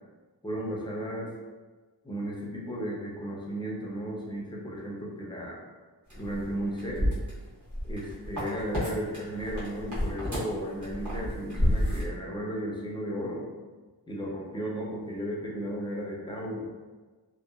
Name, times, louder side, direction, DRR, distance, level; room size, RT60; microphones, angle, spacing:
voice 1, 0.4-1.3 2.0-5.6 6.2-7.1 7.8-13.4 14.1-16.7, equal, 10° left, -4 dB, 0.5 m, -34 dB
sound 1, 6.1-8.9 9.1-12.0, left 1 dB, 45° right, 1.1 m, -30 dB
2.8 x 2.2 x 2.3 m, 1.3 s
wide cardioid pair, 125°, 41 cm